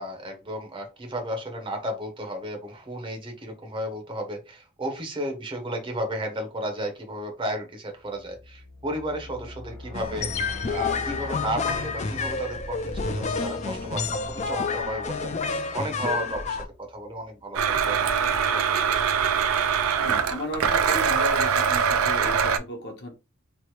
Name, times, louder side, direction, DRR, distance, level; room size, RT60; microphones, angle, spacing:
voice 1, 0.0-15.4 15.7-19.0, right 1 dB, 25° right, 3 dB, 0.7 m, -33 dB
sound 1, 8.1-16.9, left 2 dB, 75° left, 1.1 m, -43 dB
sound 2, 9.9-16.6, left 4 dB, 30° left, 0.3 m, -29 dB
Domestic sounds home sounds, 17.5-22.6, right 7 dB, 70° right, 0.4 m, -23 dB
voice 2, 19.7-23.1, left 1 dB, 50° left, 2 dB, 0.8 m, -35 dB
3.0 x 2.1 x 2.9 m, 0.28 s
head